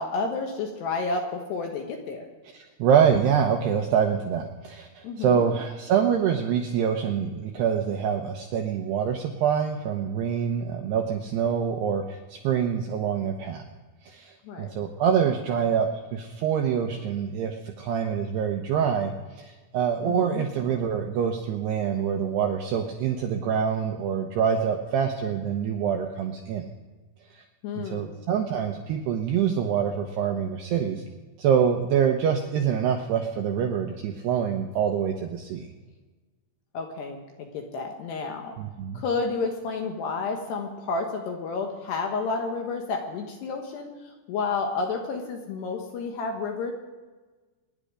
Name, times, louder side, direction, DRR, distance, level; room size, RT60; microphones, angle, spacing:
voice 1, 0.0-2.2 5.0-5.5 14.4-14.7 20.0-20.4 27.6-28.1 36.7-38.6 38.9-43.9 44.3-46.7, left 4 dB, 70° left, 3 dB, 2.9 m, -30 dB
voice 2, 2.8-13.6 14.1-14.3 14.6-19.1 19.4-26.7 27.9-31.0 31.4-35.7 38.6-39.0, right 7 dB, 80° right, 3 dB, 2.5 m, -25 dB
24.5 x 10.5 x 5.0 m, 1.3 s
omnidirectional pair, 6.0 m